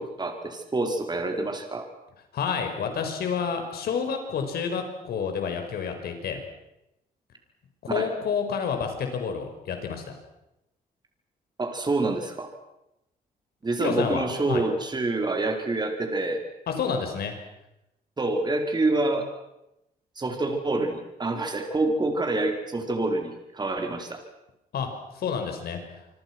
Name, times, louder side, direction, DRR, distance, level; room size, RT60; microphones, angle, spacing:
voice 1, 0.0-1.9 7.9-8.1 11.6-12.5 13.6-16.4 18.2-19.3 20.2-24.2, right 2 dB, 25° right, 4 dB, 4.6 m, -27 dB
voice 2, 2.3-6.4 7.8-10.1 13.8-14.6 16.7-17.3 24.7-26.0, left 6 dB, 80° left, 5 dB, 5.6 m, -29 dB
26.5 x 24.5 x 6.2 m, 0.89 s
cardioid pair, 110°, 16 cm